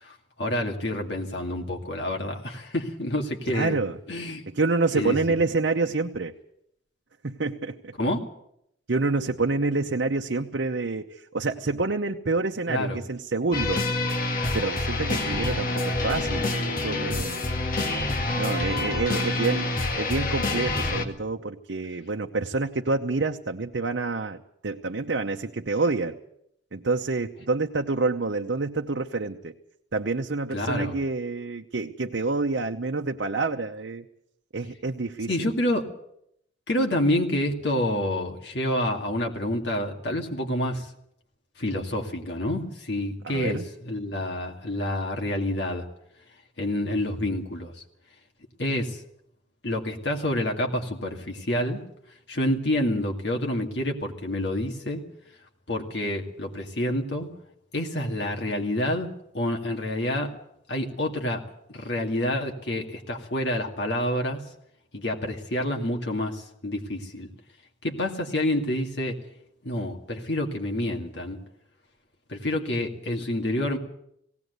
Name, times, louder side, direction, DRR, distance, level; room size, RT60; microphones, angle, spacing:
voice 1, 0.0-3.8 4.1-4.4 4.9-5.2 8.0-8.2 12.7-13.0 30.5-30.9 35.3-35.8 36.7-40.9 41.6-45.9 46.6-47.8 48.6-49.0 49.6-51.8 52.3-55.0 55.7-57.3 57.7-59.1 59.3-60.3 60.7-64.4 64.9-67.3 67.8-69.2 69.6-71.4 72.3-73.8, left 1 dB, 70° left, 2 dB, 2.3 m, -28 dB
voice 2, 3.5-4.0 4.5-6.3 7.2-7.9 8.9-13.8 14.5-17.5 18.3-19.7 20.0-24.4 24.6-26.2 26.7-29.5 29.9-34.0 34.5-35.4 43.2-43.7, right 3 dB, 75° right, 3 dB, 0.8 m, -27 dB
sound 1, 13.5-21.1, left 2 dB, 50° left, 1.9 m, -27 dB
18.5 x 18.0 x 8.1 m, 0.75 s
head